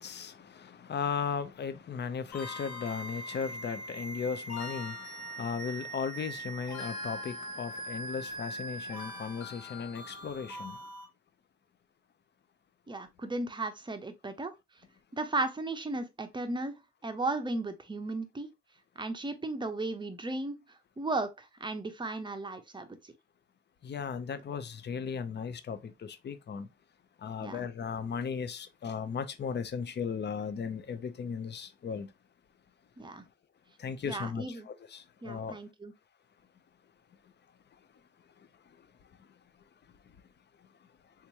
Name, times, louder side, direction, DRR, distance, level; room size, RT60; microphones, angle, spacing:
voice 1, 0.0-10.8 23.8-26.7 27.2-32.1 33.8-35.6, left 6 dB, 35° left, 0.6 m, -36 dB
sound 1, 2.3-11.0, equal, 70° left, 1.7 m, -41 dB
voice 2, 12.9-14.5 15.1-18.5 19.0-20.6 21.0-22.9 27.4-27.7 33.0-33.2 34.0-34.7 35.2-35.9, right 2 dB, 15° right, 0.6 m, -35 dB
3.5 x 2.9 x 2.8 m
cardioid pair, 90°, 30 cm